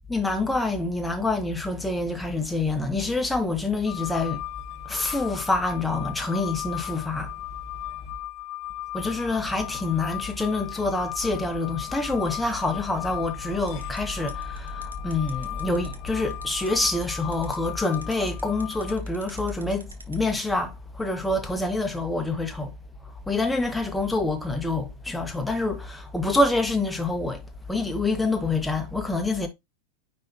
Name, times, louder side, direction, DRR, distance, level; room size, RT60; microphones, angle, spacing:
voice 1, 0.1-4.4 4.8-7.3 8.9-22.7 23.0-27.4 27.7-29.5, left 2 dB, 5° left, 1.3 m, -26 dB
sound 1, 3.9-19.0, left 16 dB, 40° left, 0.6 m, -37 dB
sound 2, 13.7-20.2, right 3 dB, 75° right, 1.0 m, -46 dB
9.7 x 3.4 x 2.9 m
figure-of-eight pair, 90°, 0 cm